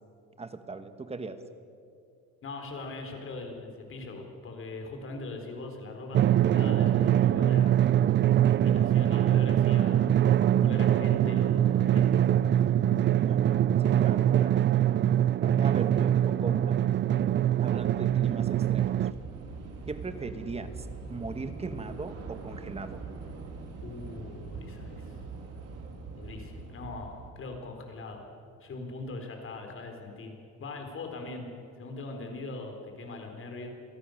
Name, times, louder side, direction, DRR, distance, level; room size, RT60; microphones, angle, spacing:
voice 1, 0.4-1.4 13.3-14.6 15.4-16.8 17.6-19.1 19.9-23.0, right 3 dB, 20° right, 10 dB, 1.3 m, -39 dB
voice 2, 2.4-7.8 8.3-10.1 10.5-12.6 23.8-25.2 26.1-28.2 28.6-30.3 30.6-31.5 31.8-33.7, left 3 dB, 45° left, 3 dB, 4.3 m, -41 dB
Drum, 6.1-19.1, right 11 dB, 40° right, 0.5 m, -23 dB
Train / Subway metro underground, 17.1-27.3, right 4 dB, 55° right, 3.3 m, -43 dB
27.0 x 18.0 x 6.6 m, 2.4 s
cardioid pair, 130°, 30 cm